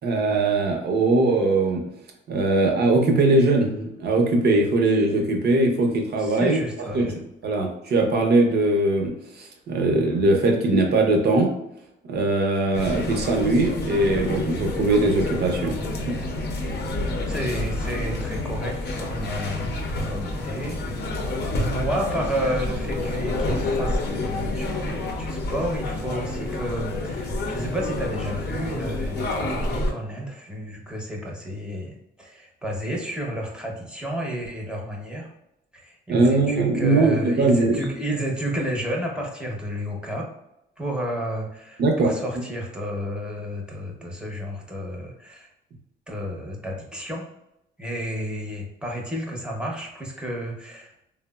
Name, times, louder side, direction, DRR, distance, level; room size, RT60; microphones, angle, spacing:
voice 1, 0.0-1.8 2.3-6.6 6.9-7.1 7.4-11.5 12.1-16.2 36.1-37.8 41.8-42.1, right 2 dB, 55° right, 2 dB, 0.7 m, -21 dB
voice 2, 6.2-7.2 17.0-21.2 21.6-35.3 35.7-40.3 40.8-45.5 46.1-47.2 47.8-50.9, equal, 5° right, -1 dB, 0.7 m, -31 dB
sound 1, 12.7-29.9, left 2 dB, 55° left, 0.6 m, -28 dB
3.3 x 2.0 x 2.2 m, 0.83 s
cardioid pair, 90°, 20 cm